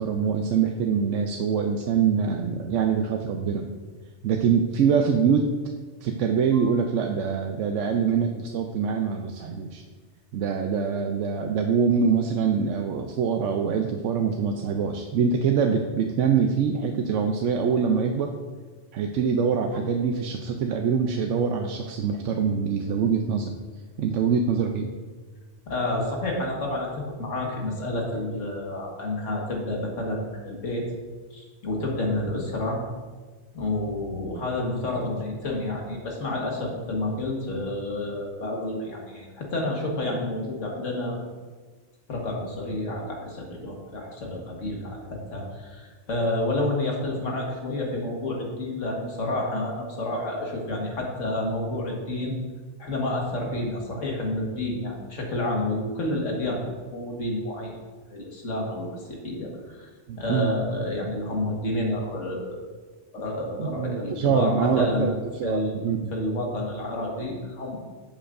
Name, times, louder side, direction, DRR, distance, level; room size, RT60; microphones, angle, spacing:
voice 1, 0.0-3.7 4.2-5.5 6.0-9.8 10.3-18.3 18.9-23.6 24.0-24.9 60.1-60.5 63.6-66.1, right 6 dB, 80° right, 3 dB, 0.9 m, -24 dB
voice 2, 25.7-26.9 27.2-30.9 31.3-32.8 33.5-41.2 42.1-52.4 52.8-57.8 58.1-59.9 60.2-62.7 63.1-65.2 65.4-65.8 66.1-67.8, left 1 dB, 85° left, 0 dB, 1.8 m, -29 dB
11.5 x 7.3 x 2.5 m, 1.4 s
omnidirectional pair, 1.2 m